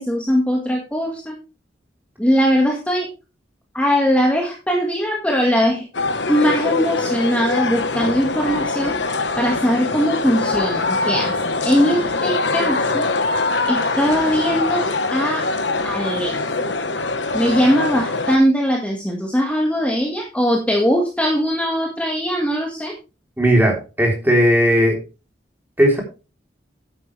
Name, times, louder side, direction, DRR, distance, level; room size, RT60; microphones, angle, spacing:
voice 1, 0.0-1.4 2.2-3.1 3.7-5.8 6.3-9.0 9.4-11.3 11.6-13.1 13.7-15.5 15.8-16.3 17.3-22.9, equal, 5° left, 0 dB, 1.8 m, -20 dB
sound 1, 5.9-18.4, left 3 dB, 70° left, 1.2 m, -23 dB
voice 2, 23.4-25.0 25.8-26.0, equal, 10° right, 1 dB, 3.5 m, -16 dB
10.5 x 9.3 x 3.3 m, 0.31 s
head